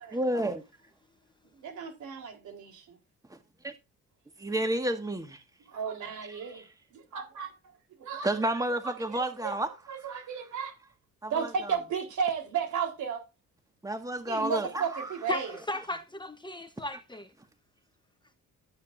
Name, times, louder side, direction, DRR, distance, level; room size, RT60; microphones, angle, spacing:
voice 1, 0.1-0.6 3.3-3.4 3.6-3.7 4.4-5.4 6.3-6.6 8.2-9.7 11.2-11.8 13.8-15.1, right 1 dB, 10° right, 1.8 m, -31 dB
voice 2, 1.5-3.0 5.7-6.6 6.9-7.5 8.0-8.3 9.1-9.5 9.9-10.7 11.3-13.2 14.3-15.5, right 6 dB, 75° right, 4.2 m, -33 dB
voice 3, 15.3-17.3, left 1 dB, 15° left, 1.1 m, -36 dB
12.5 x 9.3 x 2.7 m
cardioid pair, 90°, 30 cm